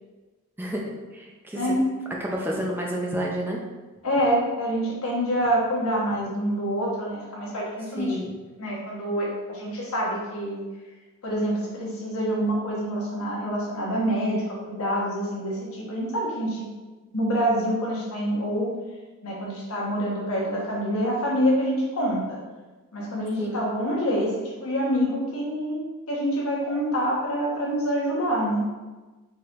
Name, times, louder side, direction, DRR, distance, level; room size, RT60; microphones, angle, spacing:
voice 1, 0.6-1.6 2.2-3.6 8.0-8.3 23.4-23.6, equal, 10° right, -2 dB, 0.5 m, -30 dB
voice 2, 1.5-1.9 4.0-8.1 8.6-10.6 11.2-16.7 17.1-18.7 19.2-22.4 22.9-24.3 24.6-25.8 26.1-28.7, equal, 80° left, -3 dB, 1.2 m, -26 dB
4.3 x 4.2 x 2.5 m, 1.2 s
head